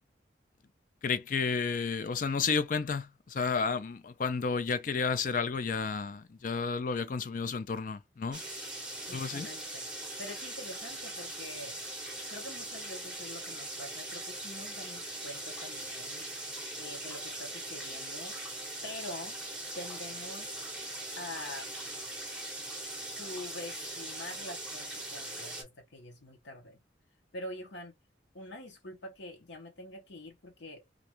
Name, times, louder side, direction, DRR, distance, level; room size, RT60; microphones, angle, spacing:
voice 1, 1.0-8.4 9.1-9.5, left 5 dB, 45° left, 0.4 m, -31 dB
sound 1, 8.3-25.6, right 1 dB, 5° right, 0.7 m, -41 dB
voice 2, 9.1-9.9 10.2-11.8 12.3-16.3 16.8-18.4 18.8-19.4 19.7-20.6 21.2-21.7 22.8-26.8 27.3-27.9 28.3-30.8, left 1 dB, 70° left, 0.8 m, -45 dB
2.5 x 2.3 x 2.8 m
head